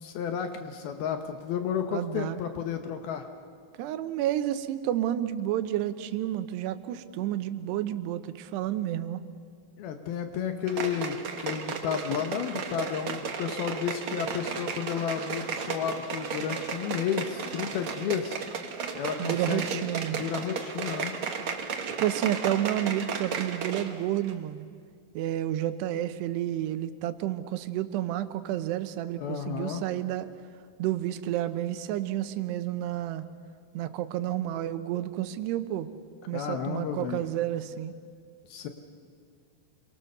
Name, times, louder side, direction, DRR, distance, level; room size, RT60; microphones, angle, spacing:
voice 1, 0.0-3.3 9.8-18.4 18.9-21.2 29.2-29.8 36.3-37.2 38.5-38.7, left 8 dB, 75° left, 6 dB, 2.8 m, -32 dB
voice 2, 1.9-2.4 3.8-9.2 19.2-20.2 21.8-24.7 25.1-30.3 30.8-33.2 33.7-35.9 36.3-37.9, right 12 dB, 90° right, 11 dB, 3.0 m, -30 dB
sound 1, 10.7-24.0 24.2-24.3, right 6 dB, 70° right, 1.3 m, -34 dB
27.5 x 23.0 x 6.8 m, 2.1 s
omnidirectional pair, 4.7 m